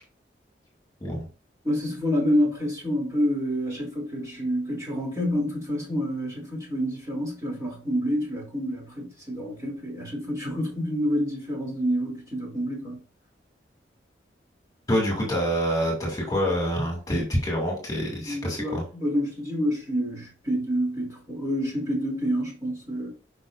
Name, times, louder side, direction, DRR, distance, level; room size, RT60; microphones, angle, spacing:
voice 1, 1.6-13.0 18.3-23.1, equal, 15° right, 3.1 m, -28 dB
voice 2, 14.9-18.8, equal, 20° left, 2.6 m, -26 dB
10.5 x 5.6 x 2.6 m
head